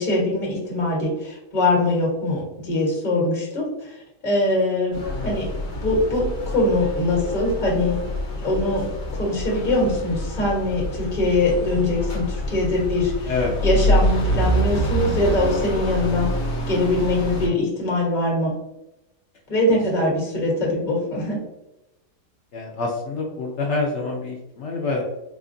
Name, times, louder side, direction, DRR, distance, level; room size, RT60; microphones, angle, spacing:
voice 1, 0.0-3.9 4.2-5.0 5.2-5.4 5.8-8.0 8.4-8.8 9.2-13.3 13.6-16.3 16.7-18.5 19.5-21.4, left 2 dB, 30° left, -3 dB, 1.2 m, -22 dB
sound 1, 4.9-17.5, equal, 50° left, 1.0 m, -26 dB
voice 2, 5.1-5.5 13.3-13.6 19.7-20.1 22.5-25.0, left 3 dB, 75° left, -1 dB, 0.6 m, -27 dB
4.3 x 2.3 x 2.5 m, 0.91 s
omnidirectional pair, 1.8 m